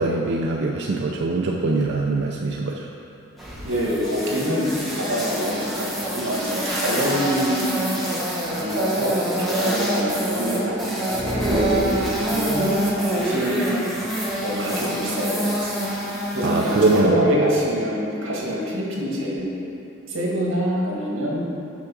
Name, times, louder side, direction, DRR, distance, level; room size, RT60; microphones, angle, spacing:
voice 1, 0.0-2.9 16.4-17.2, right 2 dB, 55° right, 0 dB, 0.4 m, -22 dB
sound 1, 3.4-17.0, right 1 dB, ahead, 1.0 m, -26 dB
voice 2, 3.6-7.9 8.6-11.2 11.7-12.8 13.1-13.9 14.4-15.7 16.3-19.6 20.1-21.5, equal, 90° right, -3 dB, 1.5 m, -25 dB
sound 2, 11.1-12.7, equal, 25° right, 0.9 m, -25 dB
6.1 x 4.7 x 6.0 m, 2.7 s
head